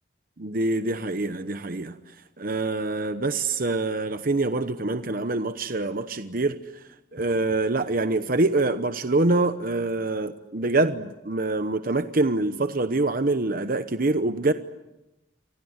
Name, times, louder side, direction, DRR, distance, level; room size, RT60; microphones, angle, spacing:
voice 1, 0.4-6.8 7.1-14.5, right 2 dB, 50° right, 10 dB, 1.0 m, -25 dB
28.5 x 25.0 x 8.1 m, 0.98 s
head